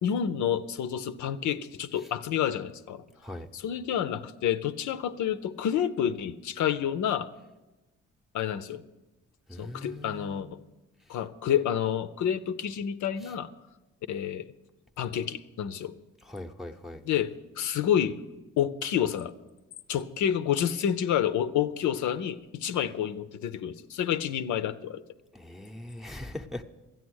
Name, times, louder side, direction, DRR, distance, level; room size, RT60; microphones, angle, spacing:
voice 1, 0.0-3.0 3.5-7.3 8.3-8.8 9.6-10.6 11.1-13.5 14.1-14.4 15.0-16.0 17.1-18.2 18.6-19.3 19.9-25.0, left 9 dB, 75° left, 11 dB, 0.7 m, -29 dB
voice 2, 9.5-10.4 16.2-17.0 25.3-26.6, left 1 dB, ahead, 2 dB, 0.7 m, -40 dB
12.5 x 9.2 x 6.3 m, 1.1 s
cardioid pair, 90°, 30 cm